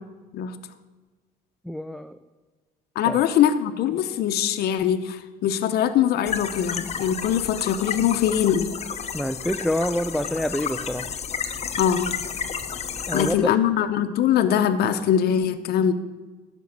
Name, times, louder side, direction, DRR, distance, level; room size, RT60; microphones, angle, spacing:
voice 1, 1.6-2.2 3.0-3.2 9.1-11.1 13.1-13.5, equal, ahead, 8 dB, 0.4 m, -27 dB
voice 2, 3.0-8.7 11.8-12.1 13.1-15.9, left 9 dB, 70° left, 7 dB, 0.8 m, -22 dB
sound 1, 6.3-13.3, left 7 dB, 40° left, 0.8 m, -31 dB
12.5 x 5.4 x 8.7 m, 1.3 s
cardioid pair, 110°, 17 cm